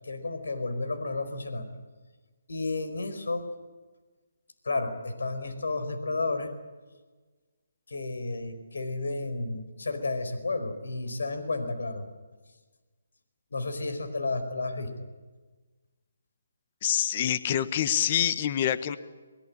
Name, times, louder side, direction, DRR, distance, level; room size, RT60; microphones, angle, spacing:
voice 1, 0.0-1.7 2.5-3.4 4.6-6.5 7.9-12.0 13.5-15.1, left 3 dB, 75° left, 8 dB, 4.7 m, -32 dB
voice 2, 16.8-19.0, left 10 dB, 35° left, 13 dB, 1.3 m, -26 dB
23.5 x 21.0 x 8.7 m, 1.3 s
figure-of-eight pair, 150°, 0 cm